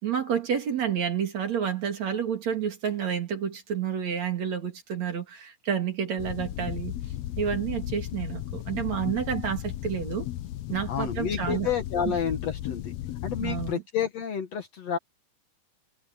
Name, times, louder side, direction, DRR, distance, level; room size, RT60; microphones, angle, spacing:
voice 1, 0.0-6.9 7.4-10.3 10.7-11.7 12.1-12.2 13.4-13.8, right 8 dB, 55° right, 3.6 m, -29 dB
sound 1, 6.2-13.7, left 13 dB, 80° left, 1.5 m, -35 dB
voice 2, 10.9-12.9 13.2-15.0, left 7 dB, 55° left, 2.7 m, -30 dB
omnidirectional pair, 3.9 m